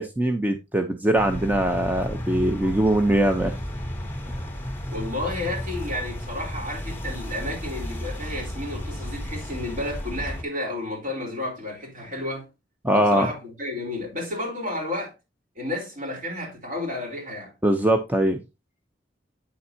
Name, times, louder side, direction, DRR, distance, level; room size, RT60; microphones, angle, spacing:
voice 1, 0.0-3.6 4.3-4.4 12.8-13.3 17.6-18.4, right 1 dB, 10° right, 0.6 m, -22 dB
sound 1, 1.1-10.4, equal, 10° left, 2.6 m, -33 dB
voice 2, 4.9-12.5 12.9-15.1 15.6-17.5, left 1 dB, 45° right, 3.9 m, -32 dB
8.7 x 7.0 x 2.7 m
head